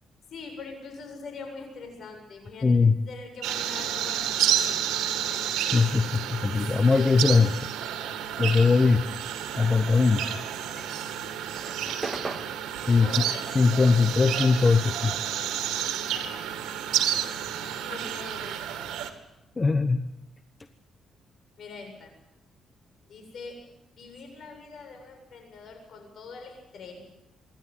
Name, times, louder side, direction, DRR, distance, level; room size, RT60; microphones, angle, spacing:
voice 1, 0.3-2.7 3.1-5.8 12.9-13.6 16.1-17.2 17.5-18.9 21.6-22.1 23.1-23.6 23.9-27.1, left 4 dB, 60° left, 4 dB, 7.7 m, -44 dB
voice 2, 2.6-2.9 5.7-7.5 8.4-9.0 9.6-10.3 12.9-13.1 13.5-15.1 19.6-20.0, left 4 dB, 25° left, 9 dB, 1.1 m, -20 dB
sound 1, 3.4-19.1, right 10 dB, 90° right, 2.2 m, -30 dB
sound 2, 10.6-15.3 15.6-17.6, right 3 dB, 20° right, 2.0 m, -40 dB
26.5 x 12.0 x 9.9 m, 0.91 s
cardioid pair, 90°, 0 cm